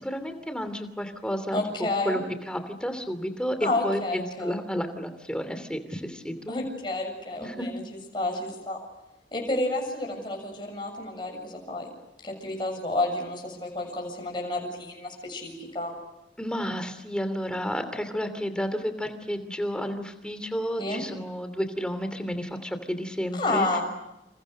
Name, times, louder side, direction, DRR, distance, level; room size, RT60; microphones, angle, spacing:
voice 1, 0.0-1.6 2.0-2.2 2.5-6.6 7.4-7.7 16.4-23.7, equal, 5° left, 9 dB, 2.8 m, -31 dB
voice 2, 1.5-2.2 3.6-4.6 6.5-7.8 8.1-8.8 9.3-11.9 12.2-16.0 20.8-21.0 23.3-23.9, left 2 dB, 25° left, 1 dB, 7.4 m, -30 dB
30.0 x 28.5 x 6.6 m, 0.91 s
head